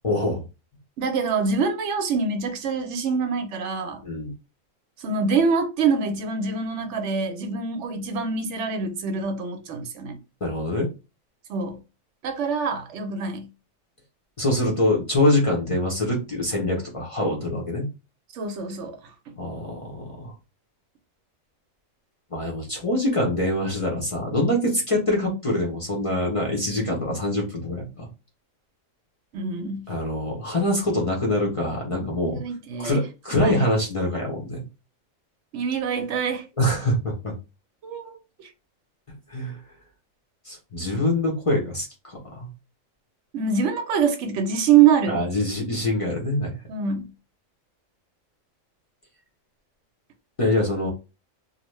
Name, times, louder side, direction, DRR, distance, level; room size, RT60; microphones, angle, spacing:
voice 1, 0.0-0.4 4.0-4.3 10.4-10.9 14.4-17.9 19.4-20.3 22.3-28.1 29.9-32.4 32.8-34.6 36.6-37.3 39.3-39.6 40.5-42.5 45.1-46.5 50.4-50.9, left 1 dB, 40° left, 0.5 m, -24 dB
voice 2, 1.0-4.0 5.0-10.2 11.5-11.8 12.2-13.5 18.3-19.0 29.3-29.9 32.2-33.0 33.3-33.6 35.5-36.5 37.8-38.5 43.3-45.2 46.7-47.1, right 6 dB, 70° right, 0.8 m, -25 dB
2.6 x 2.1 x 3.0 m
omnidirectional pair, 1.4 m